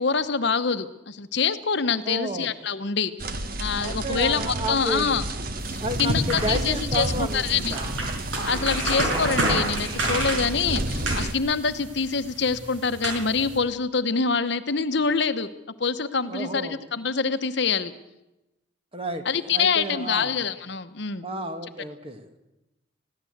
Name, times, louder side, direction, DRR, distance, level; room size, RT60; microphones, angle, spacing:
voice 1, 0.0-3.1 3.6-5.2 5.7-7.8 8.5-15.5 15.8-17.9 19.2-21.3, left 5 dB, 60° left, 11 dB, 1.0 m, -25 dB
voice 2, 2.0-2.5 3.8-5.1 5.8-7.9 8.5-8.8 16.3-16.8 18.9-20.4 21.2-22.4, right 1 dB, 30° right, 7 dB, 1.8 m, -32 dB
sound 1, 3.2-11.3, right 2 dB, 45° right, 1.4 m, -31 dB
sound 2, 5.6-13.6, right 1 dB, 75° right, 5.9 m, -30 dB
20.5 x 16.0 x 8.0 m, 0.93 s
head